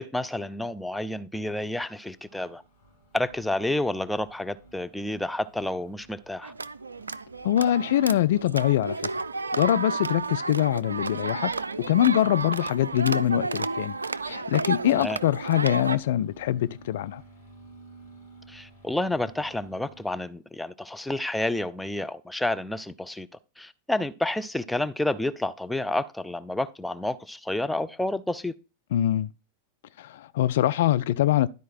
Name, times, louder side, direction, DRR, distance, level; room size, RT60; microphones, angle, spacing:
voice 1, 0.0-2.6 3.1-6.5 15.0-15.2 18.5-23.3 23.6-28.5, left 1 dB, 5° left, 0.5 m, -30 dB
sound 1, 2.1-20.1, right 2 dB, 75° left, 3.3 m, -54 dB
sound 2, 6.4-16.0, right 3 dB, 75° right, 0.3 m, -32 dB
voice 2, 7.4-9.0 9.5-11.5 11.8-13.9 14.2-17.2 28.9-29.3 30.0-31.5, left 12 dB, 55° left, 0.4 m, -23 dB
12.0 x 4.6 x 4.4 m
figure-of-eight pair, 90°, 0 cm